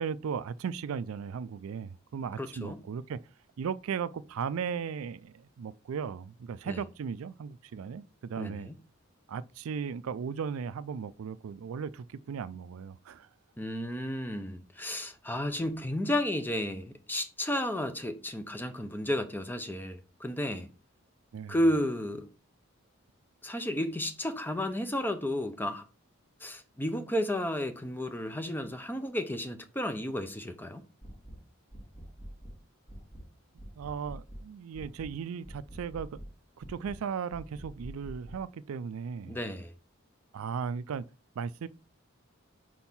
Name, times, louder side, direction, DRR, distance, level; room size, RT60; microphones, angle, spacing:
voice 1, 0.0-3.2 3.6-8.7 9.3-13.3 21.3-21.6 33.8-36.2 36.6-39.4 40.3-41.0 41.4-41.7, right 6 dB, 85° right, 0.4 m, -36 dB
voice 2, 2.4-2.8 6.7-6.8 8.4-8.7 13.6-20.7 21.5-22.3 23.4-25.8 26.4-30.8 39.3-39.7, left 1 dB, 10° left, 0.6 m, -32 dB
sound 1, 31.0-31.4 31.7-32.6 32.9-33.3 33.6-34.4 34.7-35.1 35.4-36.3 36.6-37.0 37.3-38.4, right 1 dB, 30° left, 2.1 m, -45 dB
4.6 x 4.4 x 5.5 m
head